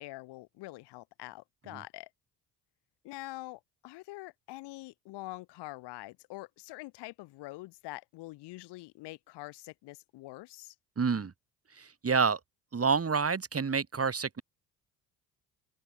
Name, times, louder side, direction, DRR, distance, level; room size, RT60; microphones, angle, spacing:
voice 1, 0.0-2.1 3.0-10.8, left 20 dB, 75° left, 3.9 m, -45 dB
voice 2, 11.0-11.3 11.7-12.4 12.7-14.4, right 5 dB, 35° right, 4.8 m, -28 dB
open air
hypercardioid pair, 60°, 41 cm